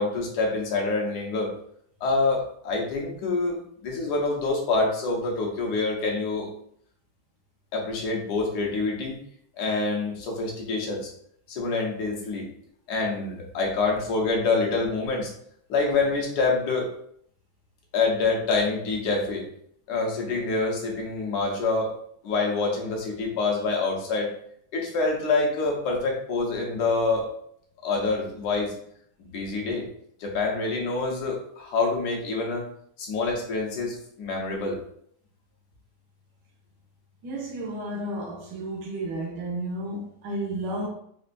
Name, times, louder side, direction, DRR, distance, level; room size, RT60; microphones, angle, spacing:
voice 1, 0.0-1.5 2.0-6.5 7.7-9.2 9.6-11.1 11.5-12.5 12.9-15.3 15.7-16.9 17.9-19.5 19.9-21.9 22.2-24.3 24.7-27.3 27.8-28.7 29.3-29.9 30.2-32.7 33.0-34.8, left 3 dB, 65° left, 1.3 m, -26 dB
voice 2, 37.2-40.9, right 1 dB, 70° right, 1.3 m, -32 dB
4.4 x 2.4 x 2.5 m
omnidirectional pair, 2.1 m